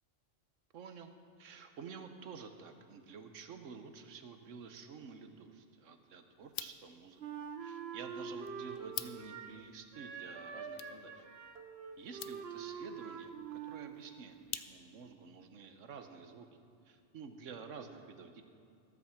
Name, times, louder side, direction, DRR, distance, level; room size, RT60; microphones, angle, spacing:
voice 1, 0.7-1.1 1.4-7.2 7.6-11.3 12.0-16.5 16.8-18.4, right 5 dB, 85° right, 7 dB, 1.3 m, -50 dB
sound 1, 6.4-15.1, left 10 dB, 60° left, 0.6 m, -50 dB
Wind instrument woodwind instrument, 7.2-9.6 9.9-14.0, right 6 dB, 60° right, 1.1 m, -45 dB
13.5 x 8.2 x 7.2 m, 2.5 s
omnidirectional pair, 1.3 m